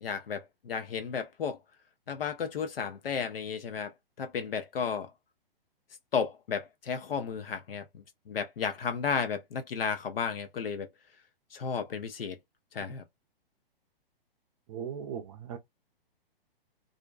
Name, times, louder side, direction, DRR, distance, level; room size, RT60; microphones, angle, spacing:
voice 1, 0.0-1.6 2.1-5.1 6.1-10.9 11.5-12.4 12.7-13.0, left 6 dB, 70° left, 0.6 m, -33 dB
voice 2, 14.7-15.6, right 8 dB, 35° right, 0.5 m, -38 dB
2.5 x 2.1 x 2.3 m
figure-of-eight pair, 120°, 29 cm